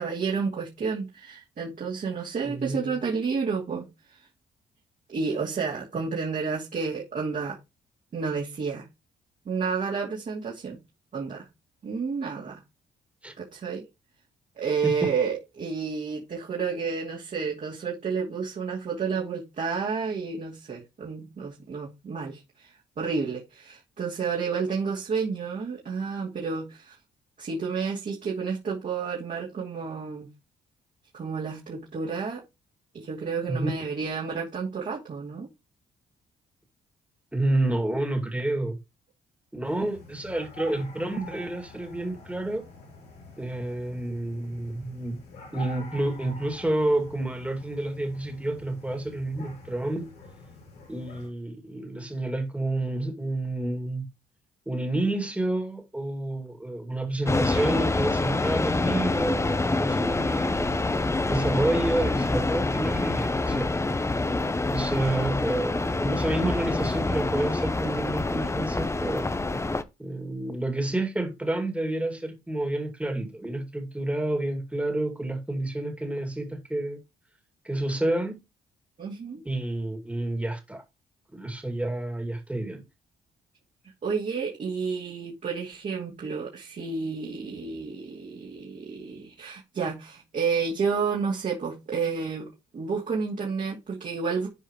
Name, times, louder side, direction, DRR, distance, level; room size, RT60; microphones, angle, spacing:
voice 1, 0.0-4.3 5.1-7.6 8.1-8.9 9.4-10.8 11.1-11.5 11.8-12.6 13.4-13.8 14.6-26.9 27.4-30.3 31.1-32.4 32.9-35.5 79.0-79.4 84.0-94.5, right 5 dB, 50° right, 2.8 m, -30 dB
voice 2, 2.4-3.0 13.2-13.3 14.8-15.2 33.5-33.7 37.3-38.8 39.5-42.6 43.4-45.2 45.5-50.1 50.9-54.0 54.7-60.8 61.3-63.7 64.7-69.3 70.0-77.0 77.6-78.4 79.4-80.8 81.3-82.8, right 1 dB, 10° right, 2.4 m, -29 dB
sound 1, 39.6-51.3, left 1 dB, 85° left, 3.6 m, -47 dB
sound 2, 57.3-69.8, left 2 dB, 15° left, 0.7 m, -26 dB
12.0 x 4.8 x 3.1 m
cardioid pair, 70°, 17 cm